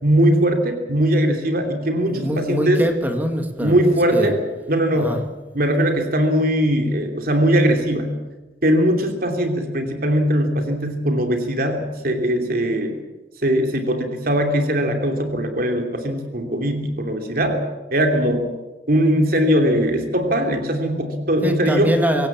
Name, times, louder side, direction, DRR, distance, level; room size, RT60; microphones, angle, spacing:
voice 1, 0.0-2.8 3.6-4.4 4.7-5.2 5.5-8.1 8.6-13.0 13.4-17.6 17.9-18.5 18.9-21.9, equal, 55° right, 4 dB, 3.0 m, -20 dB
voice 2, 2.1-4.3 5.0-5.2 21.4-22.3, equal, 10° right, 4 dB, 2.0 m, -23 dB
25.5 x 16.5 x 7.4 m, 1.2 s
head